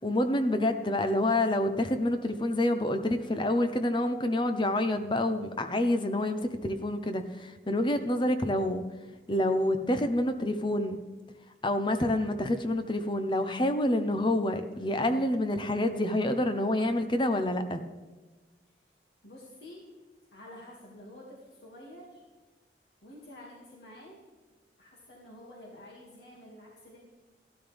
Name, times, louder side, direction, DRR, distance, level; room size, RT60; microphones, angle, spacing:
voice 1, 0.0-8.8 9.3-11.0 11.6-17.8, left 1 dB, 25° left, 9 dB, 0.7 m, -27 dB
voice 2, 19.2-19.8 20.3-22.2 23.0-24.2 24.8-27.0, left 1 dB, 70° left, -4 dB, 2.3 m, -49 dB
14.0 x 12.5 x 3.5 m, 1.3 s
head